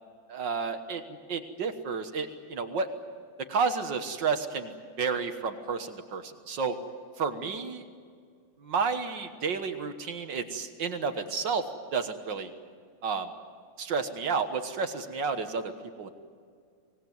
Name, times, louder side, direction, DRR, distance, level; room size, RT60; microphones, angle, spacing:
voice 1, 0.3-2.9 3.5-6.8 7.2-7.8 8.6-11.7 11.9-12.5 13.0-13.3 13.8-15.7 16.0-16.1, right 5 dB, 75° right, 7 dB, 2.1 m, -31 dB
25.5 x 19.0 x 9.5 m, 2.1 s
omnidirectional pair, 2.0 m